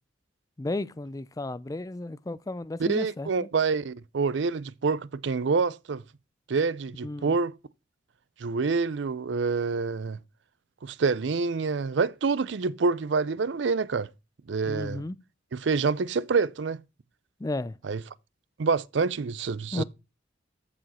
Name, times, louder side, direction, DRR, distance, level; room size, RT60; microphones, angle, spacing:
voice 1, 0.6-3.5 7.0-7.3 14.6-15.2 17.4-17.8 19.7-19.8, left 2 dB, 20° left, 0.4 m, -33 dB
voice 2, 2.8-6.0 6.5-7.5 8.4-10.2 10.8-14.1 14.5-15.0 15.5-16.8 17.8-18.0 18.6-19.8, right 4 dB, 70° right, 0.5 m, -27 dB
13.5 x 5.0 x 4.2 m
head